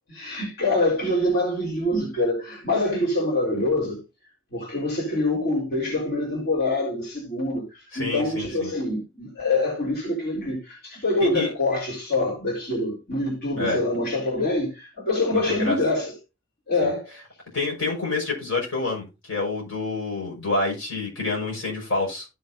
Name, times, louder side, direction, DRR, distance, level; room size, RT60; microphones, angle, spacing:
voice 1, 0.1-4.0 4.5-16.2 16.7-17.1, left 2 dB, 50° left, 4.2 m, -25 dB
voice 2, 7.9-8.7 11.2-11.5 13.6-13.8 15.3-15.8 16.8-16.9 17.5-22.3, left 3 dB, 75° left, 5.7 m, -28 dB
15.5 x 6.7 x 2.7 m
head